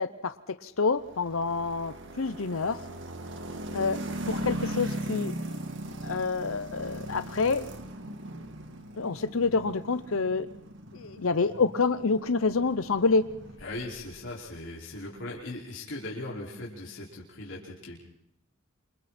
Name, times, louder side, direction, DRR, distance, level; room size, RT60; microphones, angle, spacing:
voice 1, 0.0-2.8 3.7-5.3 6.0-7.7 9.0-10.5 10.9-13.3, left 4 dB, 80° left, 13 dB, 0.8 m, -27 dB
sound 1, 1.0-14.1, right 1 dB, 60° right, 2.3 m, -39 dB
voice 2, 13.6-18.0, left 2 dB, 65° left, -4 dB, 5.3 m, -39 dB
28.0 x 27.0 x 4.4 m, 0.78 s
head